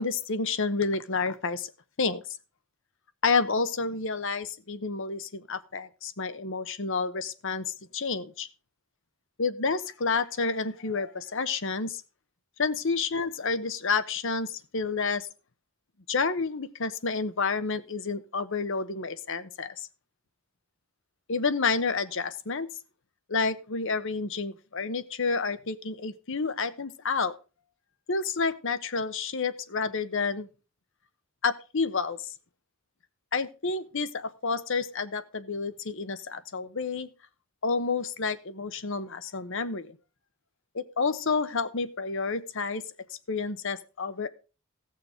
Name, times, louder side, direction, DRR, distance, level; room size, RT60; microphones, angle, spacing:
voice 1, 0.0-1.7 2.0-2.2 3.2-8.5 9.4-12.0 12.6-15.3 16.1-19.9 21.3-22.7 23.3-27.3 28.1-30.5 31.4-32.2 33.3-37.1 37.6-39.9 40.7-42.8 43.3-44.3, left 4 dB, 60° left, 12 dB, 1.0 m, -29 dB
16.0 x 6.7 x 5.1 m, 0.33 s
head